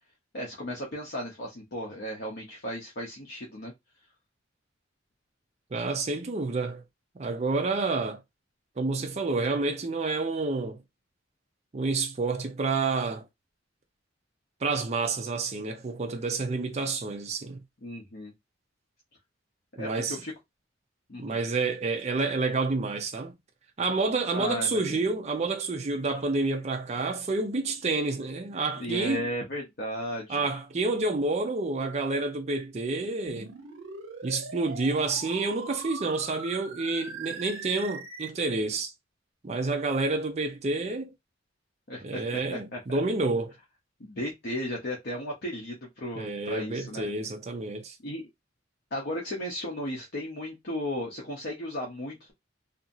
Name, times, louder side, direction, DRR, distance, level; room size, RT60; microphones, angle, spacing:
voice 1, 0.3-3.7 17.8-18.3 19.8-20.3 21.1-21.4 24.3-25.0 28.8-30.5 41.9-43.0 44.0-47.1 48.0-48.3 48.9-52.3, left 1 dB, 55° left, 0.8 m, -35 dB
voice 2, 5.7-6.8 7.2-8.2 8.8-10.8 11.7-13.2 14.6-17.6 19.8-20.2 21.2-23.3 23.8-29.3 30.3-33.5 34.2-38.9 39.4-41.1 42.0-43.5 46.1-48.0, right 3 dB, 35° right, 0.5 m, -29 dB
sound 1, 33.3-38.3, right 4 dB, 85° right, 0.7 m, -41 dB
2.8 x 2.6 x 2.6 m
head